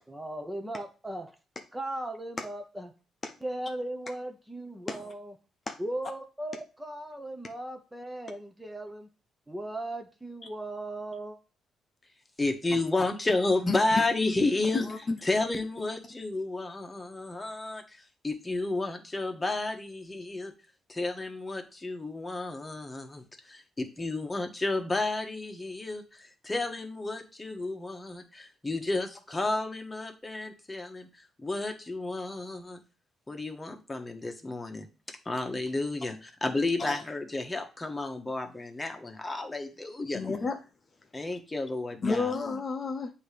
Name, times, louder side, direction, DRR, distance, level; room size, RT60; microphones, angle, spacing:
voice 1, 0.1-1.3 1.7-2.9 3.4-5.3 5.8-9.1 9.5-11.4, right 1 dB, 10° right, 0.7 m, -37 dB
voice 2, 12.4-14.8 15.2-20.5 20.9-32.8 33.3-40.2 41.1-42.3, left 2 dB, 20° left, 1.2 m, -32 dB
voice 3, 13.7-14.0 14.7-15.2 36.8-37.0 40.1-40.6 42.0-43.1, left 4 dB, 35° left, 0.7 m, -31 dB
7.7 x 2.8 x 5.0 m
cardioid pair, 90°, 0 cm